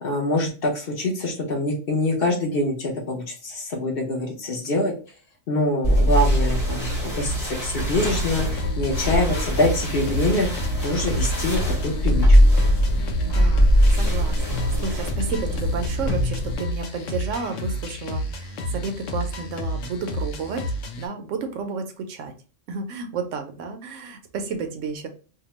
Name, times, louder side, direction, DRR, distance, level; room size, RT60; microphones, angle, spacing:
voice 1, 0.0-4.9 5.5-6.9 7.2-12.4, left 1 dB, 55° left, 0 dB, 0.8 m, -25 dB
sound 1, 5.8-16.5, equal, 30° left, 1.0 m, -21 dB
sound 2, 8.3-21.1, left 1 dB, 85° left, 1.0 m, -31 dB
voice 2, 13.2-20.6 21.0-22.3 22.7-25.1, right 5 dB, 80° right, 6 dB, 0.9 m, -32 dB
2.8 x 2.2 x 2.9 m, 0.36 s
omnidirectional pair, 1.3 m